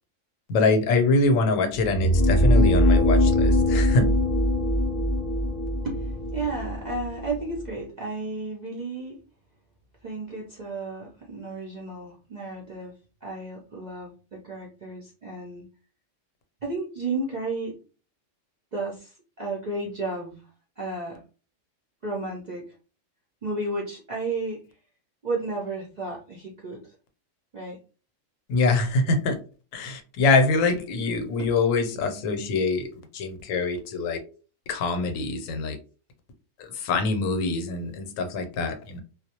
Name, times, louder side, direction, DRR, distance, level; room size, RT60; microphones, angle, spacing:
voice 1, 0.5-4.1 28.5-29.4 29.7-32.9 33.1-34.2 34.7-35.8 36.8-39.0, left 3 dB, 80° left, 7 dB, 1.0 m, -24 dB
sound 1, 1.7-7.7, left 1 dB, 40° left, 0.5 m, -22 dB
voice 2, 5.8-9.2 10.0-12.9 13.2-15.6 16.6-17.8 18.7-20.5 20.8-21.2 22.0-22.7 23.4-24.6 25.2-26.8 27.5-27.8 29.0-29.2 31.4-31.5, right 2 dB, 55° right, -3 dB, 0.4 m, -33 dB
2.2 x 2.0 x 2.8 m, 0.36 s
omnidirectional pair, 1.4 m